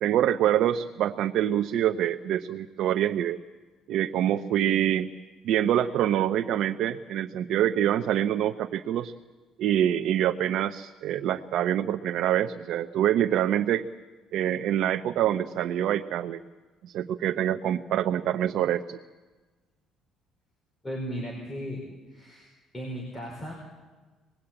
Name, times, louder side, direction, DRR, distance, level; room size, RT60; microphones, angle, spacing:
voice 1, 0.0-3.4 3.9-5.1 5.4-9.1 9.6-13.8 14.3-16.4 16.8-19.0, right 11 dB, 60° right, 6 dB, 0.7 m, -25 dB
voice 2, 20.8-22.5 22.7-23.5, equal, 15° left, -1 dB, 4.6 m, -36 dB
26.0 x 20.5 x 8.8 m, 1.3 s
cardioid pair, 160°, 0 cm